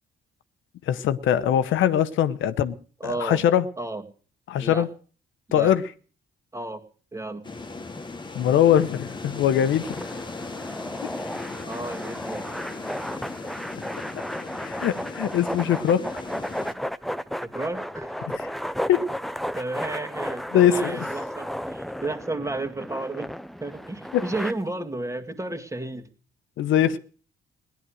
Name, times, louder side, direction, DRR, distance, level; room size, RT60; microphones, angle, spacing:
voice 1, 0.9-2.7 3.0-3.6 4.5-4.9 5.5-5.8 8.3-10.0 11.0-11.1 14.6-16.1 18.3-18.5 18.9-19.0 20.5-21.1 24.1-24.3 26.6-27.0, left 10 dB, 80° left, 0.9 m, -22 dB
voice 2, 3.0-3.4 3.8-4.0 4.6-4.8 5.5-5.7 6.5-6.8 7.1-7.4 11.6-12.5 17.4-18.2 19.5-23.3 23.6-26.1, right 2 dB, 15° right, 2.0 m, -32 dB
sound 1, 7.4-16.7, left 3 dB, 25° left, 1.5 m, -37 dB
sound 2, 9.8-24.5, equal, ahead, 0.7 m, -34 dB
17.0 x 11.5 x 6.3 m
cardioid pair, 90°, 20 cm